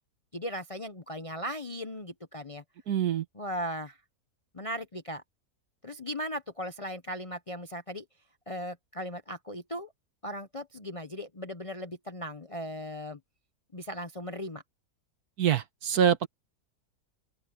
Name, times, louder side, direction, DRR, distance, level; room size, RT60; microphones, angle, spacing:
voice 1, 0.3-2.6 3.3-4.0 4.5-5.2 5.8-8.0 8.5-9.9 10.2-13.2 13.7-14.6, equal, 30° left, 0.7 m, -37 dB
voice 2, 2.9-3.2 15.4-16.3, right 9 dB, 70° right, 1.6 m, -25 dB
open air
omnidirectional pair, 1.7 m